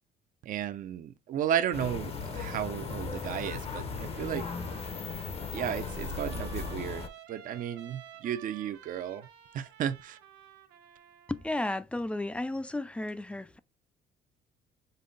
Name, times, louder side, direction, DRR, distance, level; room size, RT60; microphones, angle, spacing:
voice 1, 0.4-4.5 5.5-9.3 9.5-10.2, right 10 dB, 55° right, 0.5 m, -34 dB
sound 1, 1.7-7.1, left 5 dB, 35° left, 0.7 m, -37 dB
Trumpet, 3.9-11.5, right 10 dB, 85° right, 0.9 m, -52 dB
voice 2, 11.3-13.6, left 2 dB, 5° left, 0.3 m, -33 dB
5.3 x 2.1 x 3.8 m
cardioid pair, 110°, 17 cm